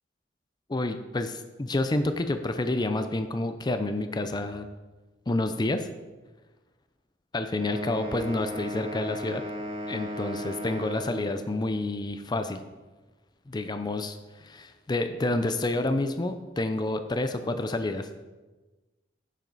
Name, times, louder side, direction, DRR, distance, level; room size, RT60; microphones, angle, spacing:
voice 1, 0.7-4.7 5.3-5.9 7.3-9.4 9.9-12.6 13.5-18.1, left 2 dB, 25° left, 8 dB, 0.5 m, -29 dB
sound 1, 7.5-11.4, equal, 30° right, 1.4 m, -35 dB
10.0 x 7.5 x 4.0 m, 1.2 s
head